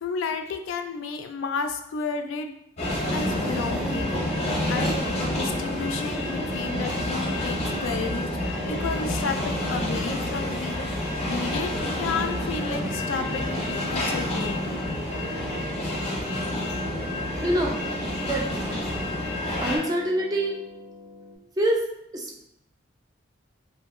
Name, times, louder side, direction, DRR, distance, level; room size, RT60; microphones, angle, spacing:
voice 1, 0.0-2.5 3.1-4.2 4.7-8.4 8.7-11.7 12.0-14.9, left 5 dB, 80° left, 6 dB, 0.3 m, -32 dB
sound 1, 2.8-19.8, left 1 dB, 35° left, 0.5 m, -28 dB
sound 2, 6.1-21.4, right 1 dB, 80° right, 0.7 m, -44 dB
voice 2, 17.4-17.8 18.2-18.5 19.6-20.6 21.6-21.8 22.1-22.5, right 1 dB, 20° right, 0 dB, 0.3 m, -25 dB
2.6 x 2.5 x 2.4 m, 0.78 s
head